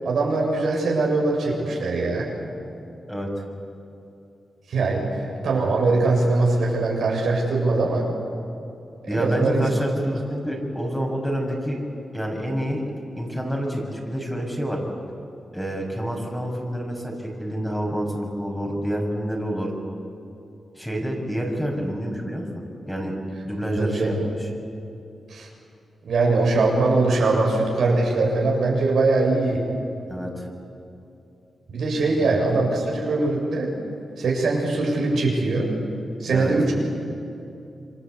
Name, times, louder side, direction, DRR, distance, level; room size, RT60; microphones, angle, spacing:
voice 1, 0.0-2.3 4.7-8.0 9.1-9.6 23.8-24.2 25.3-25.5 26.1-29.6 31.7-33.7 34.2-35.7 36.2-36.7, right 3 dB, 80° right, -1 dB, 7.1 m, -22 dB
voice 2, 9.1-11.8 12.1-12.8 13.1-14.8 15.5-19.7 20.7-23.1 23.4-24.5 30.1-30.5 32.1-32.3 36.3-36.5, equal, 5° left, 0 dB, 6.7 m, -28 dB
27.5 x 25.0 x 8.4 m, 2.7 s
cardioid pair, 75°, 0 cm